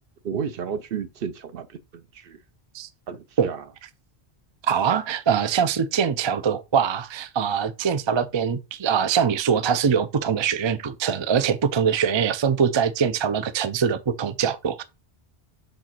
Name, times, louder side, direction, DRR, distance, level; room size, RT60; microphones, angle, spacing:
voice 1, 0.2-2.4 3.1-3.6, right 7 dB, 65° right, 0.8 m, -32 dB
voice 2, 4.6-14.8, right 7 dB, 40° right, 0.4 m, -23 dB
5.2 x 3.9 x 5.9 m
omnidirectional pair, 1.1 m